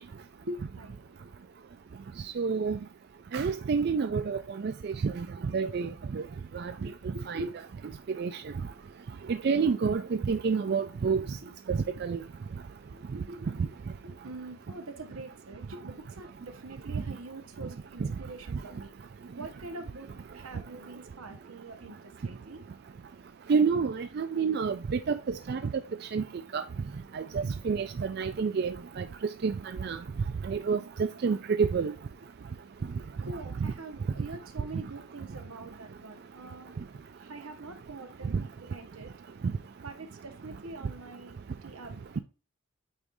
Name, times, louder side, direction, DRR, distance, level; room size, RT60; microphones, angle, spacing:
voice 1, 0.0-1.7 6.1-6.2 6.8-7.6 11.0-11.5 12.9-13.7 14.0-18.9 19.4-20.1 20.3-22.6 33.2-36.7 37.2-39.1 39.8-42.2, right 2 dB, 85° right, 1.3 m, -44 dB
voice 2, 2.4-2.8 3.3-5.3 5.5-6.2 6.5-6.7 7.3-7.4 8.2-8.3 9.3-11.2 11.7-12.2 23.5-25.6 26.1-26.2 26.5-26.6 27.1-29.0 29.4-29.5 29.8-30.0 30.5-30.8 31.2-31.9, right 5 dB, 50° right, 0.3 m, -28 dB
8.7 x 4.7 x 2.6 m
head